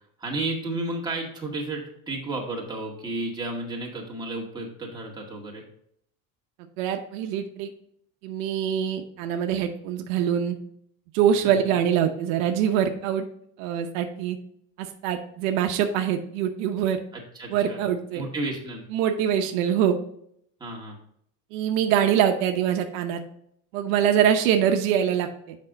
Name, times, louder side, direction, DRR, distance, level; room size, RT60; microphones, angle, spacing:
voice 1, 0.2-5.6 11.4-11.8 17.1-17.8 18.1-18.8 20.6-20.9, right 2 dB, 10° right, -2 dB, 2.0 m, -32 dB
voice 2, 6.8-7.7 8.2-10.6 11.1-13.3 13.6-14.4 14.8-17.0 17.5-18.2 18.9-20.0 21.5-23.2 23.7-25.6, right 9 dB, 80° right, 6 dB, 0.8 m, -24 dB
6.5 x 5.3 x 3.9 m, 0.70 s
supercardioid pair, 120°, 40 cm